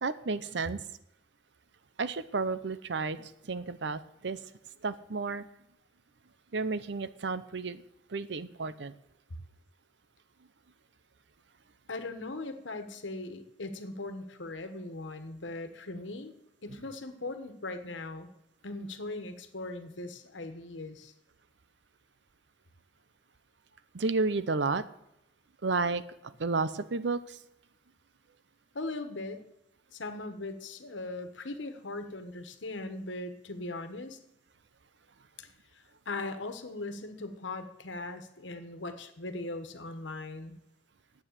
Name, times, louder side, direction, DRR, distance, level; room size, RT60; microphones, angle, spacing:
voice 1, 0.0-0.8 2.0-4.4 4.8-5.5 6.5-7.8 8.1-8.9 23.9-24.9 25.6-27.4, right 4 dB, 75° right, 14 dB, 0.7 m, -32 dB
voice 2, 11.9-16.3 16.6-18.3 18.6-21.1 28.7-29.4 29.9-34.2 35.4-40.6, left 2 dB, 90° left, 9 dB, 1.3 m, -39 dB
9.7 x 8.0 x 7.5 m, 0.85 s
head